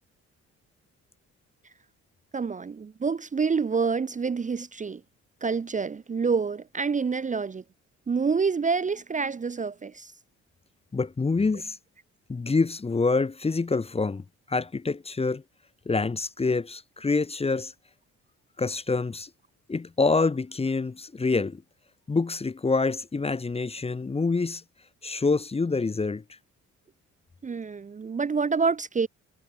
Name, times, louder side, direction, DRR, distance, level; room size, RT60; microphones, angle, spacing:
voice 1, 2.3-5.0 5.4-7.6 8.1-10.1 27.4-29.1, right 5 dB, 25° right, 0.7 m, -27 dB
voice 2, 10.9-11.8 12.3-15.4 15.9-17.7 18.6-19.3 19.7-21.6 22.1-24.6 25.0-26.2, left 4 dB, 20° left, 0.9 m, -26 dB
cardioid pair, 90°, 30 cm